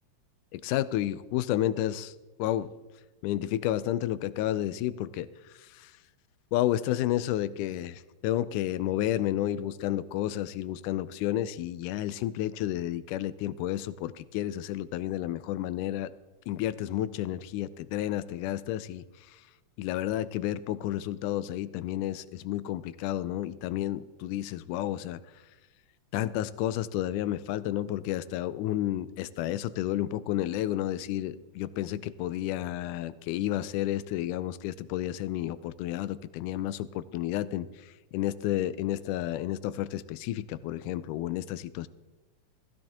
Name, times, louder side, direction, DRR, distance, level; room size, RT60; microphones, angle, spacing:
voice 1, 0.5-2.1 2.4-2.7 3.2-5.3 5.8-5.9 6.5-16.1 16.5-19.0 19.8-25.2 26.1-37.7 38.1-41.9, left 13 dB, 85° left, 16 dB, 2.0 m, -31 dB
15.5 x 15.0 x 2.9 m, 1.1 s
omnidirectional pair, 3.6 m